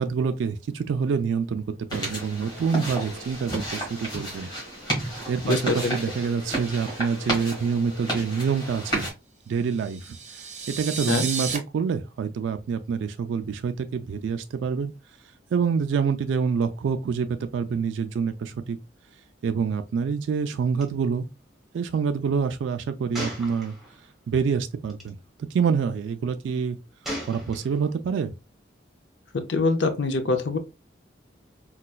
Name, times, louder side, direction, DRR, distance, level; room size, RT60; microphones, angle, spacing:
voice 1, 0.0-1.6 1.9-4.5 5.3-9.1 9.5-14.9 15.5-18.8 19.4-21.2 21.7-23.8 24.3-26.8 27.3-28.3, right 6 dB, 80° right, 0.3 m, -27 dB
sound 1, 1.9-9.1, right 1 dB, 20° left, 1.5 m, -32 dB
voice 2, 5.4-5.9 11.1-11.3 29.3-30.6, left 3 dB, 75° left, 0.5 m, -24 dB
sound 2, 9.7-11.6, right 6 dB, 35° right, 0.6 m, -32 dB
Gunshot gunfire, 20.8-20.9 21.1-21.3 23.1-24.1 24.9-25.1 27.0-28.0, equal, ahead, 0.8 m, -36 dB
4.0 x 2.2 x 2.3 m
head